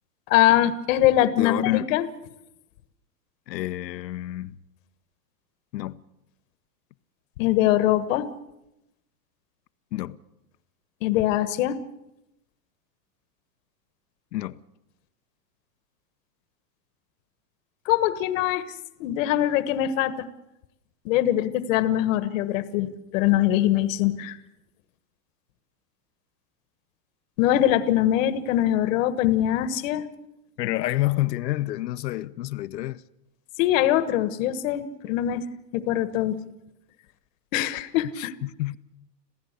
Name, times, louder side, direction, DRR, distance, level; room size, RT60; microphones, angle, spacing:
voice 1, 0.3-2.1 7.4-8.3 11.0-11.8 17.8-18.6 19.0-20.3 21.0-24.4 27.4-30.1 33.6-35.5 35.7-36.4 37.5-38.3, left 12 dB, 50° left, 1.4 m, -22 dB
voice 2, 1.2-1.9 3.5-4.5 5.7-6.0 9.9-10.2 14.3-14.6 30.6-33.0 38.2-38.8, left 16 dB, 80° left, 1.0 m, -28 dB
27.0 x 16.0 x 6.7 m
supercardioid pair, 150°, 49 cm